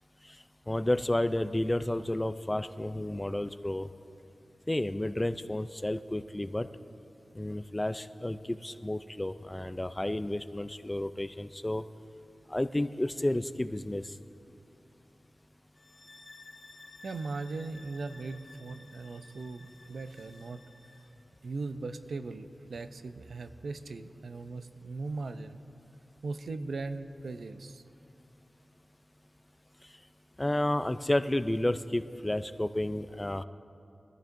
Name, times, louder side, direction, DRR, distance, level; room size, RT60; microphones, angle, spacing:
voice 1, 0.7-3.9 4.7-6.7 7.3-11.8 12.5-14.0 30.4-33.4, left 1 dB, 15° left, 11 dB, 0.4 m, -31 dB
sound 1, 15.7-21.1, left 3 dB, 55° left, 1.0 m, -54 dB
voice 2, 17.0-20.6 21.4-25.6 26.2-27.8, right 3 dB, 90° right, 10 dB, 0.5 m, -39 dB
22.0 x 14.0 x 2.6 m, 2.6 s
wide cardioid pair, 105°, 0 cm